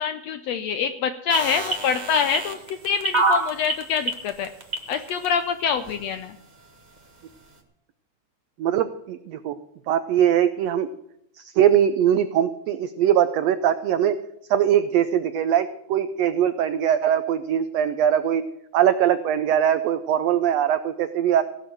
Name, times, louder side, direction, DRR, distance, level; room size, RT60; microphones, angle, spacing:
voice 1, 0.0-4.5 4.9-6.4, left 6 dB, 80° left, 9 dB, 1.5 m, -25 dB
sound 1, 1.3-5.3 5.9-6.0, right 2 dB, 45° right, 0.5 m, -25 dB
voice 2, 8.6-9.5 9.9-10.9 11.4-14.2 14.5-18.4 18.7-21.4, right 10 dB, 90° right, 11 dB, 1.4 m, -21 dB
16.0 x 6.6 x 7.6 m, 0.78 s
omnidirectional pair, 3.6 m